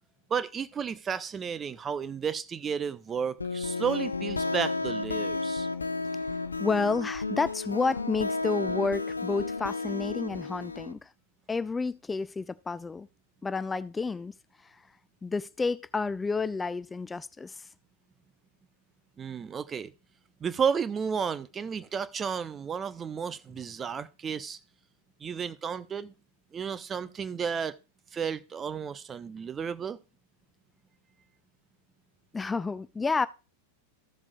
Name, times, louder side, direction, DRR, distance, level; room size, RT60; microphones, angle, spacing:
voice 1, 0.3-5.7 19.2-19.9 20.4-24.6 25.2-26.1 26.5-27.8 28.1-30.0, right 7 dB, 20° right, 0.7 m, -32 dB
sound 1, 3.4-10.9, left 3 dB, 75° left, 0.4 m, -32 dB
voice 2, 6.6-11.1 11.5-13.1 13.4-14.3 14.6-14.8 15.2-17.7 32.3-33.3, left 4 dB, 10° left, 0.4 m, -30 dB
14.5 x 7.2 x 2.3 m
figure-of-eight pair, 90°, 0 cm